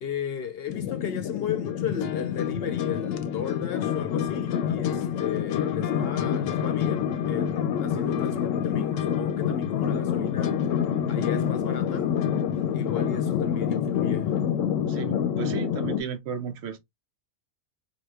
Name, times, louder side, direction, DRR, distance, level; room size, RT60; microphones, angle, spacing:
voice 1, 0.0-10.6 11.1-12.2 12.7-14.4, left 8 dB, 60° left, 0.7 m, -35 dB
sound 1, 0.7-16.0, left 8 dB, 90° left, 1.0 m, -27 dB
voice 2, 14.9-16.8, right 7 dB, 65° right, 0.8 m, -34 dB
4.8 x 2.2 x 2.3 m
omnidirectional pair, 1.3 m